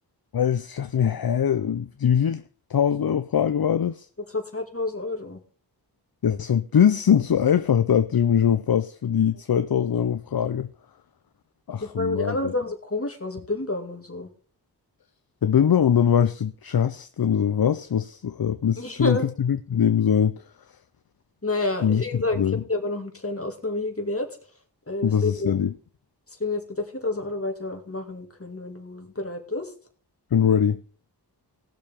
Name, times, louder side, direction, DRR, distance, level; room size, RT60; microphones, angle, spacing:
voice 1, 0.3-2.4 2.7-4.1 6.2-10.7 11.7-12.4 15.4-20.4 21.8-22.0 22.4-22.6 25.0-25.7 30.3-30.8, left 8 dB, 60° left, 0.6 m, -22 dB
voice 2, 4.3-5.4 11.8-14.3 18.8-19.3 21.4-22.4 22.7-24.3 24.9-25.5 26.4-29.7, left 2 dB, 35° left, 2.1 m, -29 dB
19.0 x 6.7 x 3.6 m
wide cardioid pair, 65°, 41 cm